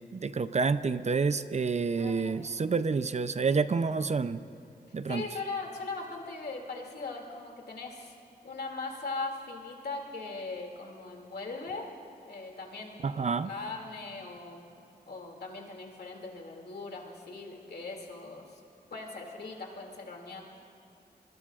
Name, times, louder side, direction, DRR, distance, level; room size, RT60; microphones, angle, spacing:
voice 1, 0.1-4.4 4.9-5.2 13.0-13.5, right 4 dB, 40° right, 12 dB, 0.5 m, -28 dB
voice 2, 2.0-2.3 5.1-8.1 8.4-11.9 12.2-14.6 15.1-18.6 18.9-20.4, left 3 dB, 70° left, 0 dB, 2.6 m, -40 dB
25.0 x 22.5 x 2.5 m, 2.7 s
cardioid pair, 75°, 17 cm